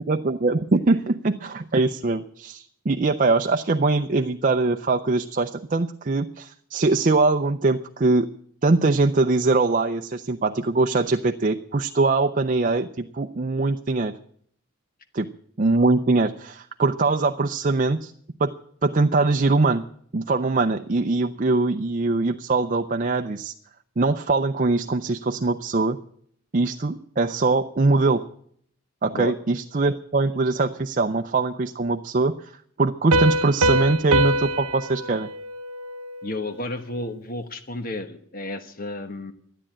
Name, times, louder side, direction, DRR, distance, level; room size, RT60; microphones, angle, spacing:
voice 1, 0.1-8.3 8.6-14.2 15.1-15.3 15.6-18.1 18.4-18.6 18.8-19.8 20.1-23.5 24.0-26.0 26.5-28.2 29.0-32.5 32.8-35.3, right 3 dB, 40° right, 6 dB, 0.5 m, -22 dB
Piano, 33.1-36.5, right 1 dB, 85° right, 0.7 m, -24 dB
voice 2, 36.2-39.3, left 2 dB, 40° left, 9 dB, 1.2 m, -32 dB
13.0 x 9.8 x 8.8 m, 0.63 s
head